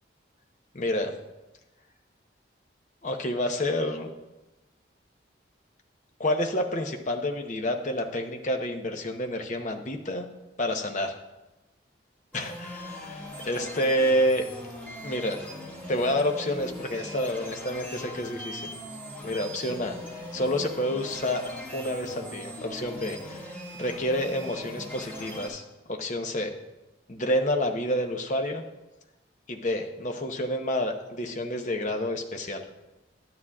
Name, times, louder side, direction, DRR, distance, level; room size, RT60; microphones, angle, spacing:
voice 1, 0.7-1.1 3.0-4.1 6.2-10.3 10.6-11.2 12.3-14.4 15.0-15.4 15.9-18.7 19.2-21.4 21.7-23.4 23.8-25.6 25.9-26.5 27.1-28.6 29.5-32.6, left 1 dB, 40° left, 4 dB, 0.8 m, -29 dB
sound 1, 12.3-25.5, equal, 10° left, 1.9 m, -40 dB
11.0 x 9.9 x 2.4 m, 1.0 s
head